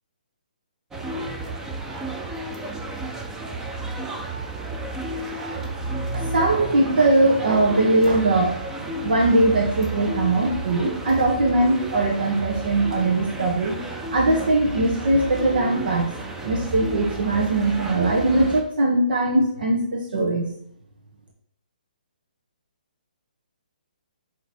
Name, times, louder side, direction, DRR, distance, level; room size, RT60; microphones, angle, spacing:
sound 1, 0.9-18.6, right 2 dB, 10° right, 0.6 m, -32 dB
voice 1, 6.1-8.5 9.0-13.7 14.1-16.1 16.4-20.5, right 2 dB, 70° right, 0 dB, 1.2 m, -20 dB
7.7 x 3.1 x 4.5 m, 0.70 s
hypercardioid pair, 150°, 5 cm